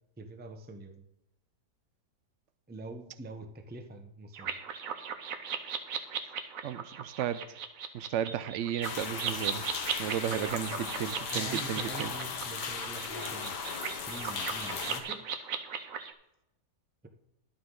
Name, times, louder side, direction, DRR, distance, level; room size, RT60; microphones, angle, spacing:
voice 1, 0.2-1.0 2.7-4.6 10.3-10.8 11.3-13.7 14.1-15.2, right 1 dB, 10° right, 6 dB, 0.5 m, -45 dB
sound 1, 4.3-16.1, right 7 dB, 60° right, 1.2 m, -37 dB
voice 2, 6.6-7.6 7.9-9.6 10.0-12.1, right 10 dB, 75° right, 14 dB, 0.6 m, -34 dB
sound 2, 8.8-15.0, left 5 dB, 75° left, 1.7 m, -37 dB
11.5 x 8.7 x 3.8 m, 0.86 s
omnidirectional pair, 1.8 m